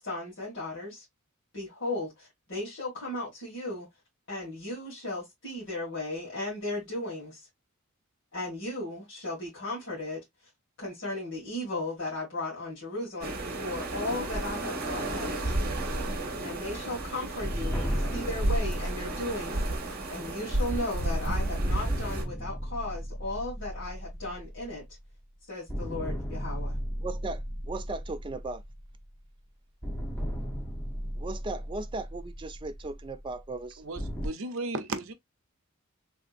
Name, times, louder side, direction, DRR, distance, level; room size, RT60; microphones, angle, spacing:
voice 1, 0.0-1.0 1.5-3.9 4.3-7.5 8.3-10.2 10.8-15.4 16.4-24.8 25.5-26.8, left 2 dB, 55° left, 1.9 m, -36 dB
sound 1, 13.2-22.2, right 1 dB, 45° right, 1.1 m, -32 dB
sound 2, 17.4-21.0 21.5-25.3 25.7-29.3 29.8-34.3, equal, 5° left, 0.7 m, -36 dB
voice 2, 27.0-28.6 31.2-33.8, right 3 dB, 20° right, 0.3 m, -37 dB
voice 3, 33.8-35.1, right 3 dB, 65° right, 0.6 m, -35 dB
3.4 x 2.8 x 2.4 m
head